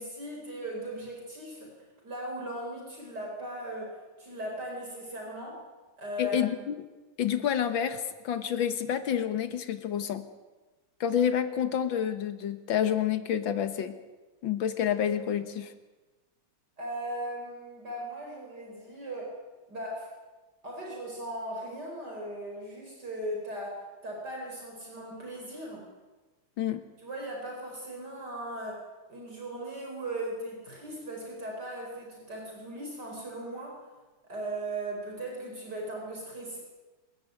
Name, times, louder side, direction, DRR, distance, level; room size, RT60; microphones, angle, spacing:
voice 1, 0.0-5.6 6.0-6.5 16.8-19.4 19.7-20.1 20.6-25.9 27.0-28.8 29.1-33.9 34.3-36.6, right 1 dB, 60° right, 0 dB, 5.3 m, -38 dB
voice 2, 6.2-6.8 7.2-10.3 11.0-14.0 14.4-15.7 26.6-26.8, left 9 dB, 80° left, 10 dB, 2.0 m, -28 dB
27.5 x 14.5 x 9.3 m, 1.2 s
omnidirectional pair, 2.1 m